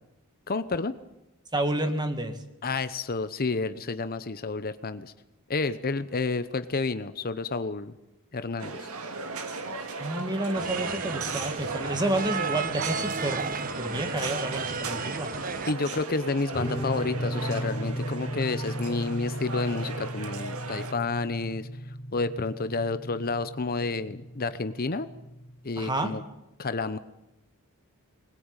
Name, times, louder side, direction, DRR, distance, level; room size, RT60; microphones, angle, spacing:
voice 1, 0.5-0.9 2.6-5.1 5.5-7.9 8.3-8.9 15.7-21.7 22.1-25.1 25.6-26.2 26.6-27.0, left 3 dB, 40° left, 12 dB, 0.9 m, -30 dB
voice 2, 1.5-2.4 10.0-15.3 25.8-26.2, right 1 dB, 20° right, 8 dB, 2.1 m, -30 dB
sound 1, 8.6-20.9, right 3 dB, 70° right, 2.3 m, -36 dB
sound 2, 10.5-15.7, right 5 dB, 40° right, 0.9 m, -34 dB
sound 3, 16.5-25.5, equal, 15° left, 3.4 m, -36 dB
22.0 x 20.5 x 9.0 m, 0.92 s
head